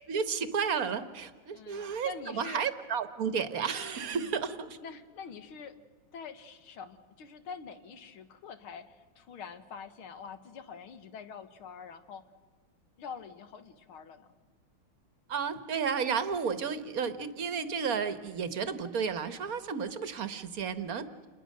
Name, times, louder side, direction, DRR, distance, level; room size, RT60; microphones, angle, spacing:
voice 1, 0.1-4.8 15.3-21.3, right 6 dB, 50° right, 12 dB, 1.4 m, -32 dB
voice 2, 1.5-2.6 4.1-4.4 4.8-5.8 6.1-12.2 13.0-14.3, left 6 dB, 75° left, 10 dB, 2.2 m, -45 dB
28.5 x 21.0 x 6.6 m, 1.5 s
omnidirectional pair, 2.4 m